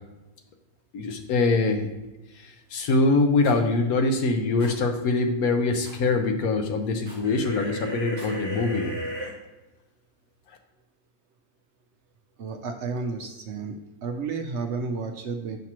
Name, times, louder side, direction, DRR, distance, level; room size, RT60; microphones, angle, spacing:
voice 1, 0.9-1.9 2.4-9.0, left 3 dB, 85° left, 5 dB, 1.2 m, -23 dB
Rattle, 3.4-3.6 4.6-4.8 5.8-6.0 7.0-7.3 8.0-8.4, right 1 dB, 5° right, 1.6 m, -46 dB
sound 1, 7.2-9.3, right 1 dB, 25° left, 2.1 m, -34 dB
voice 2, 12.4-13.8 14.0-15.6, right 4 dB, 65° right, 5 dB, 0.7 m, -31 dB
6.0 x 5.7 x 2.9 m, 1.1 s
omnidirectional pair, 1.5 m